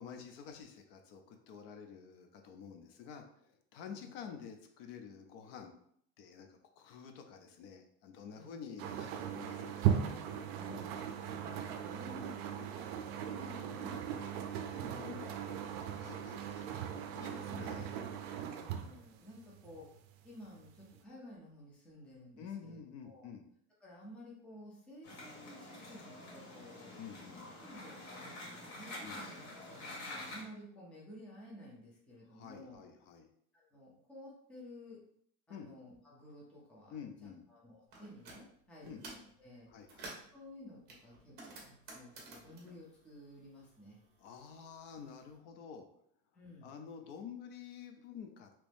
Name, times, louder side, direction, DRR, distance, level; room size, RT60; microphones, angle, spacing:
voice 1, 0.0-5.7 6.2-10.1 15.0-15.4 16.0-16.7 17.1-18.0 22.4-23.5 27.0-27.4 29.0-29.2 32.3-33.3 35.5-35.7 36.9-37.4 38.8-39.0 39.7-40.1 44.2-45.9 46.6-48.5, left 7 dB, 60° left, 5 dB, 0.5 m, -49 dB
sound 1, 8.8-20.1 20.6-21.0, right 9 dB, 60° right, 0.5 m, -38 dB
voice 2, 10.5-11.0 11.3-15.3 17.1-17.7 18.4-19.9 20.2-22.8 23.0-23.3 23.8-26.9 27.6-32.8 33.5-35.0 35.5-39.7 40.3-44.0 46.3-46.7, left 1 dB, 5° left, -5 dB, 0.4 m, -53 dB
sound 2, 25.0-30.4, left 1 dB, 90° left, 1.5 m, -47 dB
sound 3, 37.9-38.4 38.8-39.3 39.7-40.3 40.9-43.8 44.1-45.2, right 2 dB, 30° right, 0.7 m, -51 dB
2.9 x 2.6 x 3.3 m, 0.66 s
cardioid pair, 175°, 34 cm